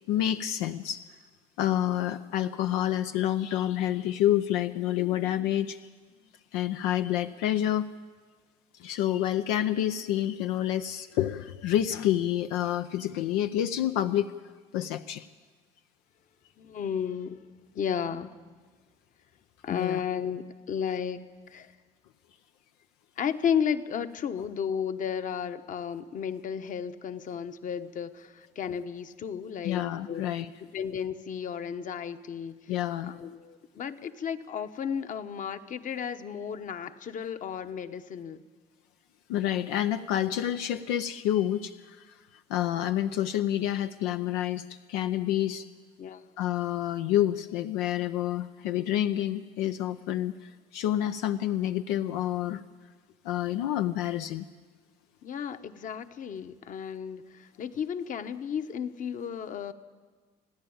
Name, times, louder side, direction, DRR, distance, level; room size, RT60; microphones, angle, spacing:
voice 1, 0.1-1.0 1.6-5.8 6.5-7.9 8.8-14.3 14.7-15.3 19.7-20.0 29.6-30.5 32.7-33.1 39.3-42.1 42.5-45.7 46.4-50.3 50.7-52.6 53.2-54.4, left 12 dB, 90° left, 9 dB, 0.6 m, -28 dB
voice 2, 16.6-17.4 17.7-18.3 19.6-21.7 23.2-30.2 30.7-32.6 33.0-38.4 46.0-46.2 55.2-59.7, left 7 dB, 50° left, 10 dB, 1.1 m, -33 dB
29.0 x 10.0 x 8.8 m, 1.4 s
supercardioid pair, 90°, 17 cm